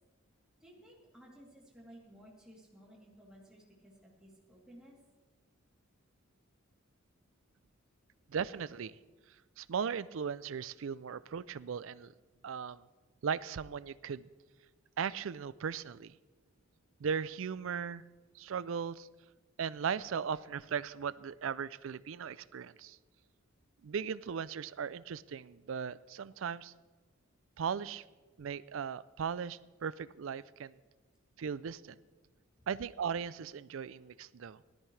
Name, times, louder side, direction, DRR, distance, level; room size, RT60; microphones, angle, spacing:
voice 1, 0.6-5.0, equal, 5° right, -5 dB, 3.1 m, -56 dB
voice 2, 8.3-9.0 9.6-12.1 12.4-12.8 13.2-14.3 15.0-16.2 17.0-18.0 18.3-19.1 19.6-23.0 23.8-26.7 27.6-28.0 28.4-30.8 31.4-32.0 32.7-34.6, right 7 dB, 65° right, 18 dB, 0.4 m, -37 dB
17.0 x 13.0 x 3.3 m, 1.2 s
head